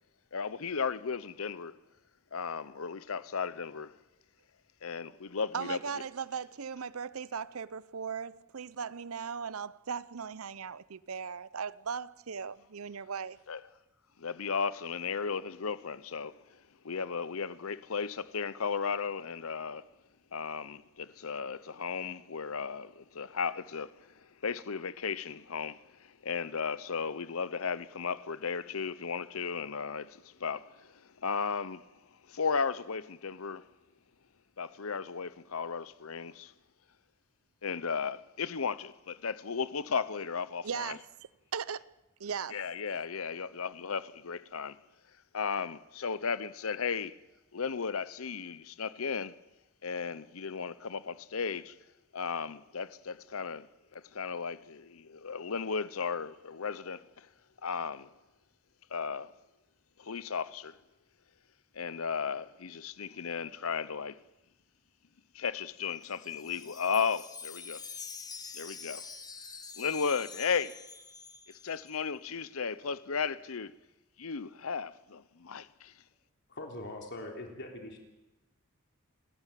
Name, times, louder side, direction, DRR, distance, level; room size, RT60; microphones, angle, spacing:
voice 1, 0.3-1.8 2.3-4.0 4.8-5.8 13.5-13.6 14.2-16.6 16.8-19.8 20.3-31.8 32.3-33.6 34.6-36.5 37.6-41.0 42.5-44.8 45.3-47.2 47.5-49.4 49.8-51.7 52.1-53.7 53.9-57.3 57.6-58.1 58.9-59.3 60.0-60.8 61.7-64.2 65.3-67.8 68.5-69.0 69.8-70.8 71.5-73.7 74.2-75.9, left 5 dB, 75° left, 0.8 m, -35 dB
voice 2, 5.5-13.4 40.6-41.0 41.5-41.9 42.2-42.6, right 6 dB, 85° right, 0.7 m, -38 dB
Wind chime, 65.8-72.0, left 5 dB, 20° left, 1.2 m, -46 dB
voice 3, 76.5-78.0, left 1 dB, 55° left, 3.5 m, -42 dB
28.0 x 14.5 x 9.1 m
head